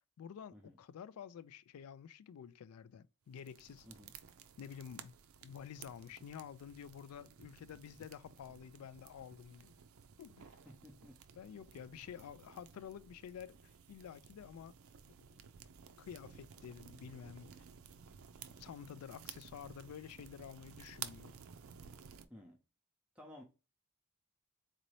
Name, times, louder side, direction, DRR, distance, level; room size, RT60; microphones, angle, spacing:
voice 1, 0.2-3.9 4.6-5.1 5.4-9.7 10.2-10.6 11.4-14.7 15.3-15.5 16.0-17.5 18.6-21.4, left 8 dB, 85° left, 0.3 m, -50 dB
sound 1, 3.3-22.3, right 8 dB, 70° right, 0.4 m, -55 dB
voice 2, 10.6-11.2 22.3-22.6 23.2-23.4, left 1 dB, 5° right, 0.6 m, -55 dB
4.0 x 2.7 x 3.1 m
head